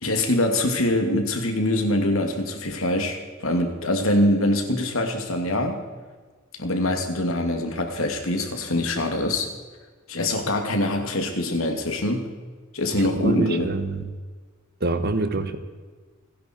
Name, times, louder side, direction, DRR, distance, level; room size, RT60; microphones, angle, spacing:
voice 1, 0.0-5.8 6.6-9.5 10.1-12.3 12.7-13.7 15.3-15.4, left 1 dB, 80° left, 4 dB, 2.7 m, -24 dB
voice 2, 12.9-14.1 14.8-15.6, right 2 dB, 50° right, 9 dB, 1.5 m, -26 dB
30.0 x 10.5 x 4.6 m, 1.5 s
head